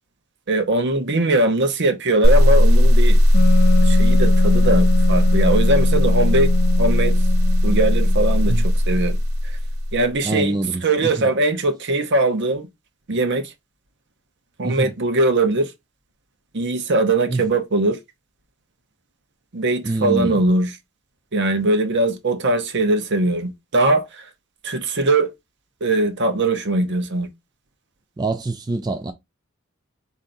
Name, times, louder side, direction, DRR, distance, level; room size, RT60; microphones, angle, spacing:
voice 1, 0.5-3.2 3.8-6.5 6.8-7.2 7.6-9.2 9.9-12.7 13.1-13.5 14.6-15.7 16.5-18.0 19.5-20.7 21.3-24.3 24.6-25.3 25.8-27.3, right 2 dB, 60° right, 0.9 m, -20 dB
sound 1, 2.2-10.0, equal, 85° right, 0.9 m, -16 dB
Wind instrument woodwind instrument, 3.3-8.7, left 6 dB, 45° left, 0.4 m, -25 dB
voice 2, 10.2-11.3 14.6-14.9 17.3-17.4 19.8-20.4 28.2-29.1, right 2 dB, 20° right, 0.4 m, -25 dB
4.4 x 2.7 x 3.9 m
head